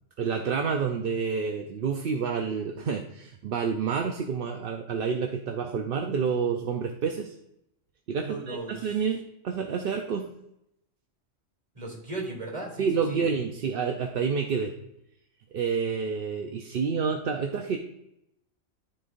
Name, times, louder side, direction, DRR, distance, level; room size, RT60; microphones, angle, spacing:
voice 1, 0.2-7.3 8.1-10.3 12.8-14.7 15.5-17.8, right 6 dB, 60° right, 4 dB, 0.7 m, -29 dB
voice 2, 8.2-9.0 11.7-13.3, right 2 dB, 30° right, -2 dB, 2.8 m, -37 dB
13.0 x 4.5 x 2.5 m, 0.82 s
omnidirectional pair, 1.2 m